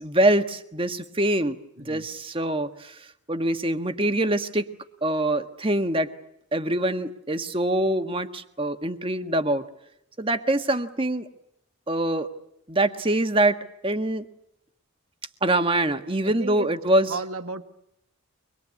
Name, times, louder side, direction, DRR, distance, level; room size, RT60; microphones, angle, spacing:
voice 1, 0.0-1.6 1.8-2.9 3.3-4.7 5.0-6.1 6.5-9.6 10.2-11.3 11.9-12.3 12.7-13.6 13.8-14.3 15.4-17.2, right 1 dB, 25° right, 8 dB, 1.5 m, -24 dB
voice 2, 16.2-16.7 17.1-17.7, right 3 dB, 75° right, 8 dB, 1.6 m, -34 dB
25.0 x 21.5 x 9.6 m, 0.80 s
head